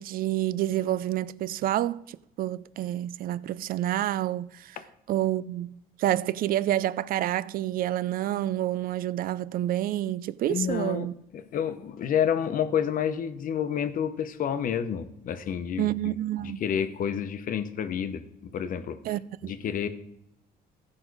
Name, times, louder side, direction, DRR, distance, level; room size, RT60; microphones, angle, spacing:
voice 1, 0.0-4.8 5.1-11.1 15.8-16.6 19.0-19.5, right 13 dB, 60° right, 0.4 m, -28 dB
voice 2, 10.5-19.0 19.4-19.9, left 8 dB, 55° left, 0.9 m, -29 dB
15.0 x 5.3 x 4.7 m
cardioid pair, 110°, 17 cm